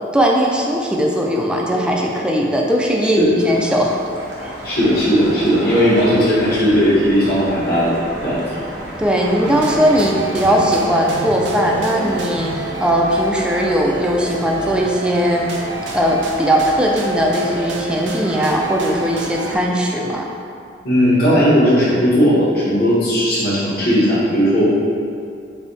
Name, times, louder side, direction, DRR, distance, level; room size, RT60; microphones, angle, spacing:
voice 1, 0.1-4.0 4.4-4.5 9.0-15.5 15.9-20.3, equal, 5° right, -1 dB, 0.3 m, -18 dB
sound 1, 3.4-19.6, right 1 dB, 90° right, 0.8 m, -33 dB
voice 2, 4.6-7.9 8.2-8.4 20.8-24.7, equal, 60° left, -10 dB, 1.0 m, -16 dB
sound 2, 9.4-19.5, right 3 dB, 70° right, 0.4 m, -29 dB
3.4 x 2.7 x 3.9 m, 2.4 s
head